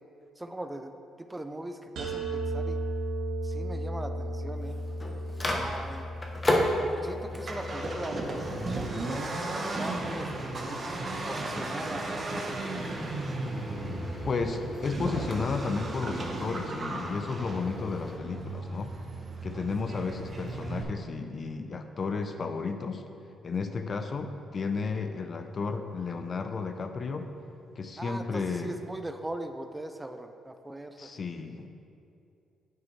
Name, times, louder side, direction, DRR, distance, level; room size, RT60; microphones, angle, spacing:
voice 1, 0.4-2.8 3.4-4.8 5.5-6.1 7.0-9.1 9.7-10.8 11.2-12.3 28.0-31.1, right 1 dB, 10° right, 7 dB, 0.4 m, -40 dB
sound 1, 2.0-7.8, right 1 dB, 85° right, 1.5 m, -35 dB
Microwave oven, 4.5-18.2, left 1 dB, 25° left, 0.9 m, -36 dB
Accelerating revving vroom, 7.3-20.8, right 2 dB, 40° right, 0.9 m, -35 dB
voice 2, 14.2-18.9 19.4-23.0 23.4-27.3 27.8-28.8 31.0-31.7, left 4 dB, 40° left, 7 dB, 0.5 m, -33 dB
9.1 x 5.2 x 3.2 m, 2.6 s
cardioid pair, 90°, 0 cm